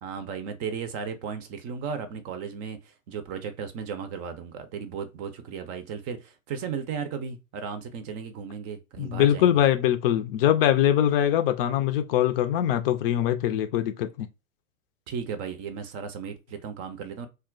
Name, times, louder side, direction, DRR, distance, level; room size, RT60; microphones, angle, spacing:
voice 1, 0.0-9.6 15.1-17.3, right 6 dB, 35° right, 0.6 m, -35 dB
voice 2, 9.0-14.3, left 11 dB, 45° left, 0.5 m, -22 dB
2.3 x 2.0 x 3.7 m
hypercardioid pair, 100°, 41 cm